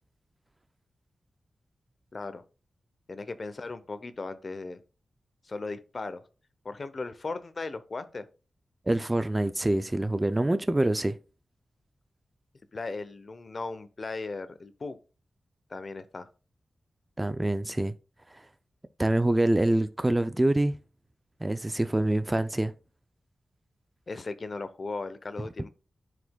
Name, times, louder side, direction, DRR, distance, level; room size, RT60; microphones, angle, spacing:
voice 1, 2.1-2.4 3.1-4.8 5.4-6.2 6.6-8.3 12.7-15.0 15.7-16.3 24.1-25.7, left 3 dB, 40° left, 0.7 m, -37 dB
voice 2, 8.9-11.2 17.2-17.9 18.3-18.4 19.0-20.7 21.4-22.7, right 1 dB, 15° right, 0.3 m, -25 dB
13.0 x 5.0 x 2.2 m
wide cardioid pair, 150°, 0 cm